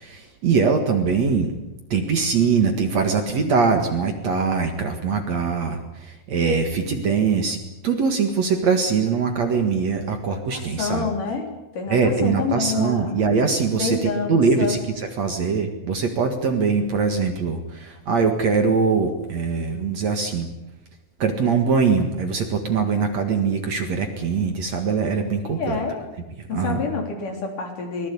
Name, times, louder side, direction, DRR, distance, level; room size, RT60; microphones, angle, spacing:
voice 1, 0.0-1.5 1.9-11.1 11.9-20.5 21.2-25.8 26.5-26.8, right 5 dB, 50° right, 5 dB, 2.6 m, -22 dB
voice 2, 10.5-11.5 11.7-13.2 13.8-14.8 25.4-26.0 26.5-28.1, left 4 dB, 55° left, 3 dB, 4.8 m, -27 dB
23.0 x 20.0 x 8.5 m, 0.99 s
omnidirectional pair, 4.4 m